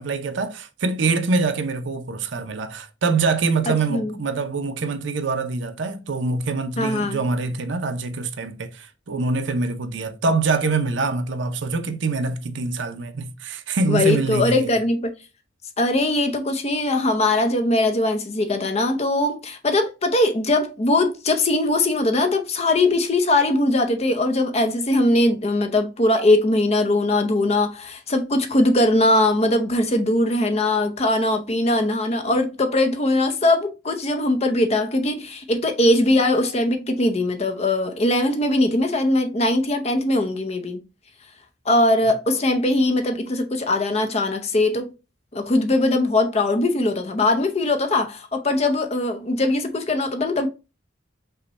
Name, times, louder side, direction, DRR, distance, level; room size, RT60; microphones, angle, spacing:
voice 1, 0.0-14.8, right 4 dB, 65° right, 0.6 m, -24 dB
voice 2, 3.7-4.1 6.8-7.2 13.9-15.1 15.8-40.8 41.7-44.9 45.3-50.5, left 2 dB, 30° left, 0.6 m, -21 dB
5.4 x 2.2 x 4.0 m
head